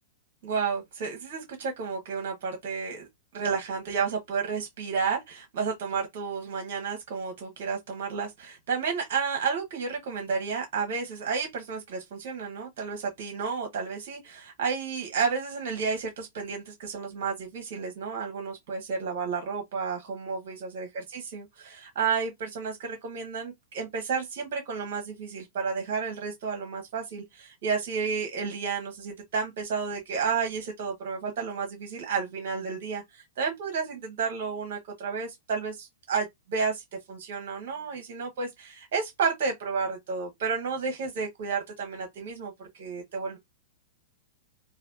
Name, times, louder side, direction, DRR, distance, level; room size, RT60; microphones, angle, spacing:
voice 1, 0.4-3.1 3.3-43.4, right 5 dB, 50° right, 1.1 m, -31 dB
3.2 x 2.6 x 2.6 m
figure-of-eight pair, 100°, 0 cm